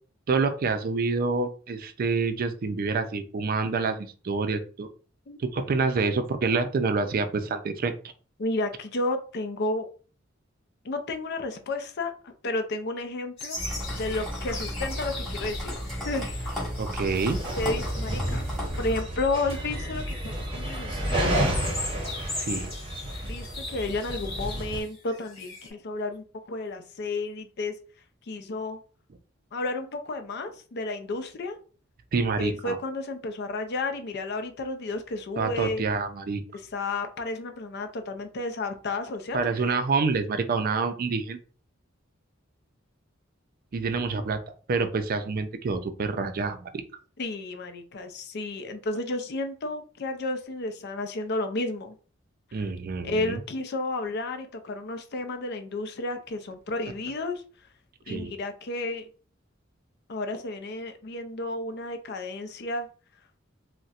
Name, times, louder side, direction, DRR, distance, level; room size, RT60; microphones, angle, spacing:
voice 1, 0.3-4.9 5.4-7.9 16.8-17.4 22.4-22.7 32.1-32.8 35.4-36.4 39.3-41.4 43.7-46.8 52.5-53.4 58.1-58.3, right 4 dB, 45° right, 8 dB, 0.4 m, -27 dB
voice 2, 8.4-9.9 10.8-13.6 14.0-15.8 16.1-16.7 17.6-18.4 18.8-21.3 23.2-27.7 28.3-28.8 29.5-31.6 32.4-35.8 36.5-39.8 47.2-51.9 52.5-52.6 53.0-57.4 58.1-59.1 60.1-62.9, left 2 dB, 55° left, 7 dB, 0.5 m, -32 dB
sound 1, 13.4-25.7, left 2 dB, 30° left, 1.6 m, -40 dB
sound 2, 13.5-19.0, equal, ahead, 1.3 m, -33 dB
sound 3, 17.1-24.8, right 1 dB, 25° right, 0.8 m, -31 dB
4.0 x 2.1 x 2.4 m, 0.38 s
head